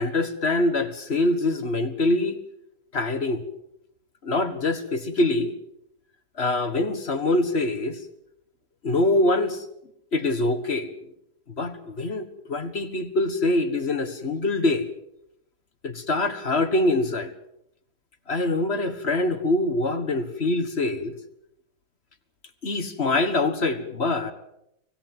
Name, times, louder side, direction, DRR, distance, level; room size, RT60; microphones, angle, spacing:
voice 1, 0.0-2.4 2.9-3.4 4.2-5.5 6.4-8.0 8.8-9.6 10.1-10.9 11.6-14.9 15.8-17.3 18.3-21.1 22.6-24.3, left 2 dB, 40° left, 8 dB, 1.7 m, -24 dB
25.0 x 17.5 x 7.7 m, 0.79 s
omnidirectional pair, 1.8 m